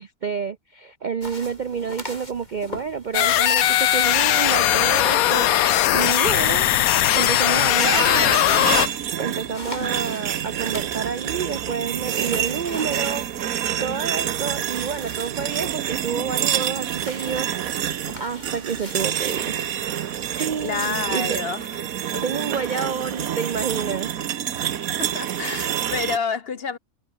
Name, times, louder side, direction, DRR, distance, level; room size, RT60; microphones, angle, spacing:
voice 1, 0.0-6.8 7.1-8.4 9.2-17.5 17.9-19.6 20.3-21.4 22.2-24.1, right 6 dB, 50° right, 0.5 m, -29 dB
sound 1, 1.2-20.9, left 1 dB, 30° left, 5.1 m, -42 dB
sound 2, 3.1-8.9, left 13 dB, 75° left, 1.2 m, -19 dB
sound 3, 7.8-26.2, right 10 dB, 75° right, 1.4 m, -27 dB
voice 2, 20.6-21.8 22.1-22.2 25.0-26.8, left 5 dB, 45° left, 1.1 m, -29 dB
omnidirectional pair, 1.5 m